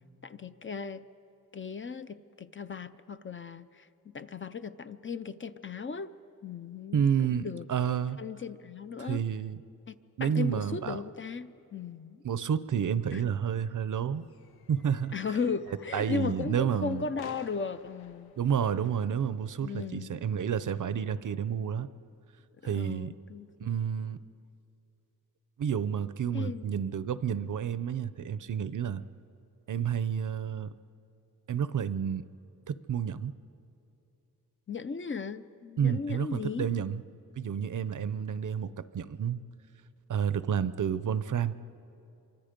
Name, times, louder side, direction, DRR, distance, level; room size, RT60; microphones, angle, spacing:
voice 1, 0.2-1.0 1.5-3.9 4.1-6.1 6.4-7.0 7.3-7.7 8.2-9.2 9.9-10.0 10.2-12.2 13.1-13.3 15.1-18.3 19.6-20.2 22.6-23.5 26.3-26.7 34.7-36.7, left 5 dB, 35° left, 12 dB, 0.5 m, -36 dB
voice 2, 6.9-8.2 9.0-9.6 10.2-11.0 12.2-14.2 14.7-15.1 15.9-17.1 18.4-21.9 22.6-23.1 23.6-24.2 25.6-29.0 29.7-30.7 31.5-32.2 32.7-33.3 35.8-37.0 37.4-39.4 40.1-41.6, right 8 dB, 60° right, 15 dB, 0.6 m, -30 dB
sound 1, 14.0-19.3, left 8 dB, 90° left, 0.7 m, -53 dB
26.5 x 24.0 x 5.2 m, 2.9 s
wide cardioid pair, 165°, 36 cm